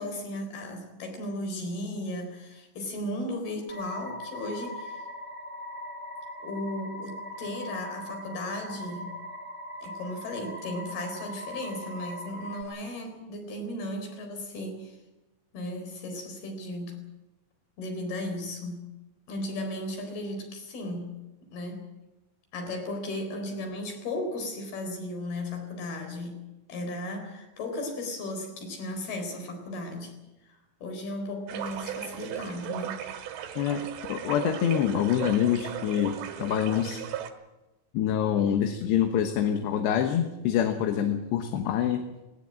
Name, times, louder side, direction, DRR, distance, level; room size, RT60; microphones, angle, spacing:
voice 1, 0.0-5.0 6.4-9.2 9.8-15.0 15.5-17.0 17.8-18.9 19.3-21.2 21.5-21.8 22.5-26.4 26.7-30.2 30.8-33.0, left 1 dB, 60° left, 4 dB, 5.8 m, -35 dB
sound 1, 3.7-12.6, left 1 dB, 20° right, 2.2 m, -40 dB
sound 2, 31.5-37.3, right 10 dB, 75° right, 3.8 m, -37 dB
voice 2, 34.1-37.0 37.9-42.0, left 9 dB, 75° left, 6 dB, 3.3 m, -26 dB
19.0 x 18.5 x 8.9 m, 1.0 s
omnidirectional pair, 5.2 m